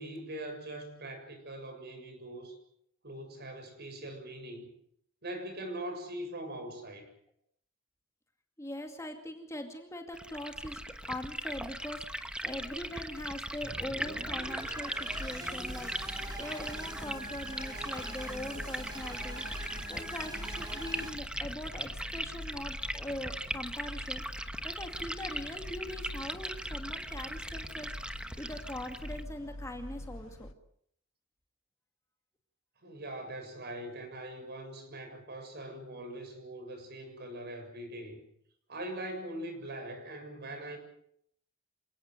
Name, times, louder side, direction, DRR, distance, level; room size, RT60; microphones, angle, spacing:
voice 1, 0.0-2.6 3.0-4.7 5.2-7.1 32.8-38.2 38.7-40.8, right 1 dB, 50° right, 7 dB, 7.1 m, -42 dB
voice 2, 8.6-30.5, left 1 dB, 15° left, 4 dB, 2.3 m, -42 dB
Liquid, 10.1-29.2, right 1 dB, 5° right, 1.2 m, -39 dB
sound 1, 13.6-21.1, right 1 dB, 20° right, 4.5 m, -44 dB
sound 2, 15.1-30.5, left 1 dB, 70° left, 1.6 m, -46 dB
28.0 x 18.0 x 7.9 m, 0.68 s
head